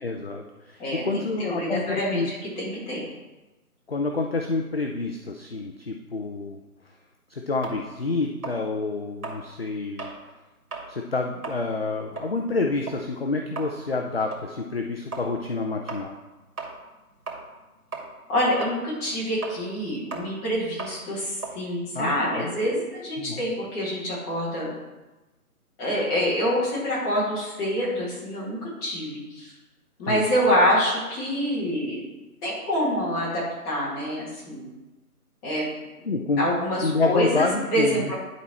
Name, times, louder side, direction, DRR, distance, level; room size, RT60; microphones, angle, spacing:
voice 1, 0.0-2.3 3.9-6.6 7.3-10.1 10.9-16.1 21.9-22.5 23.2-23.4 30.0-30.3 36.0-36.5 36.8-38.1, left 3 dB, 40° left, 3 dB, 0.5 m, -28 dB
voice 2, 0.8-3.0 18.3-24.7 25.8-29.5 30.0-32.0 32.4-34.7 35.4-35.6 36.4-38.1, equal, 10° left, -8 dB, 1.8 m, -26 dB
sound 1, 7.6-10.2 10.6-10.9 11.3-17.7 17.9-22.7, right 4 dB, 70° right, 2.8 m, -38 dB
11.0 x 4.2 x 4.3 m, 1.1 s
figure-of-eight pair, 160°, 46 cm